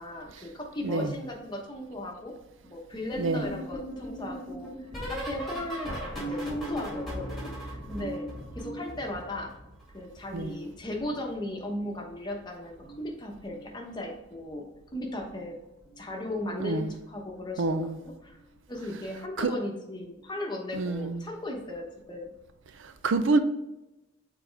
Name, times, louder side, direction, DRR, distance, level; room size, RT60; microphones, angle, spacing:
voice 1, 0.0-2.3 2.6-4.7 5.1-8.2 8.6-9.5 9.9-14.6 14.9-15.6 16.0-17.8 18.2-18.4 18.7-22.3, left 1 dB, 20° left, 1.0 m, -37 dB
sound 1, 3.1-9.9 10.2-11.8 12.7-13.1 13.4-13.7 15.2-15.5 15.9-16.1 17.7-17.8, equal, ahead, 2.2 m, -38 dB
voice 2, 3.2-3.5 10.3-10.5 16.6-16.9 17.6-18.0 19.4-19.5 20.7-21.2 22.8-23.4, right 3 dB, 70° right, 0.5 m, -27 dB
6.8 x 4.2 x 3.4 m
head